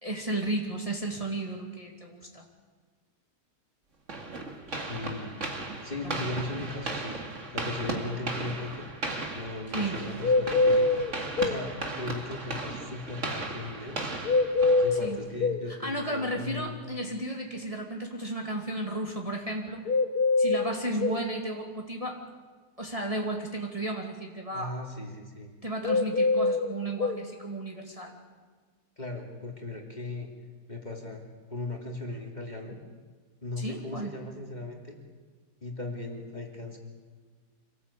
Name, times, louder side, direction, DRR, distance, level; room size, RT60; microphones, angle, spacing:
voice 1, 0.0-2.4 6.0-6.2 9.7-10.0 15.0-15.2 15.7-19.9 20.4-22.2 22.8-24.7 25.6-28.1 33.6-34.2, right 1 dB, 20° right, 0 dB, 2.5 m, -33 dB
sound 1, 4.1-15.4, right 2 dB, 45° right, 2.5 m, -36 dB
voice 2, 4.8-7.2 7.5-8.9 9.3-10.9 11.4-14.1 14.8-16.8 24.5-25.5 29.0-30.3 30.7-32.8 33.4-35.0 35.6-36.8, left 2 dB, 25° left, 1 dB, 2.9 m, -38 dB
sound 2, 10.2-11.6 14.2-15.6 19.9-21.3 25.8-27.2, left 3 dB, 70° left, 1.7 m, -24 dB
26.0 x 18.0 x 8.5 m, 1.5 s
omnidirectional pair, 1.7 m